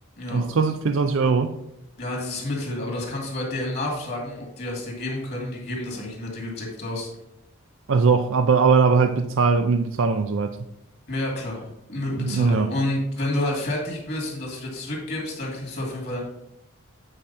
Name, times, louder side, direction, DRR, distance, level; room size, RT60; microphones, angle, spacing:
voice 1, 0.3-1.5 7.9-10.6 12.2-12.7, right 5 dB, 60° right, 0.4 m, -20 dB
voice 2, 2.0-7.1 11.1-16.2, left 1 dB, 45° left, 2.4 m, -29 dB
8.8 x 4.7 x 4.2 m
head